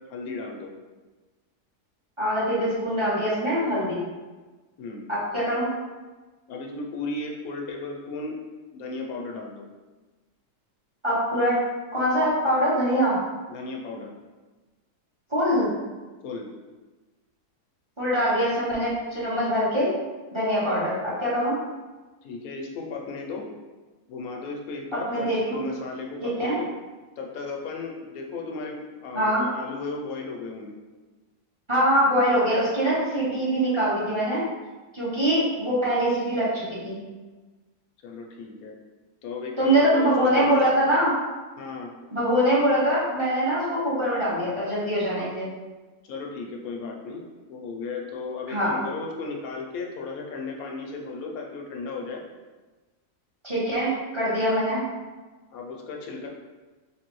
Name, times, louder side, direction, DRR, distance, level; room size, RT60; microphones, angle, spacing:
voice 1, 0.1-0.7 4.8-5.1 6.5-8.4 8.7-9.7 13.5-14.1 16.2-16.5 22.2-23.5 24.1-26.7 27.2-30.7 38.0-38.7 39.2-40.8 41.6-41.9 46.0-47.2 47.5-52.2 55.5-56.3, left 3 dB, 75° left, 0 dB, 1.0 m, -35 dB
voice 2, 2.2-4.0 5.1-5.7 11.0-11.6 11.9-13.2 15.3-15.7 18.0-19.9 20.3-21.5 24.9-25.6 26.2-26.6 29.1-29.4 31.7-34.4 34.9-37.0 39.6-41.1 42.1-45.5 48.5-48.7 53.4-54.8, equal, 20° right, -9 dB, 1.0 m, -23 dB
3.4 x 3.3 x 3.0 m, 1.3 s
omnidirectional pair, 1.6 m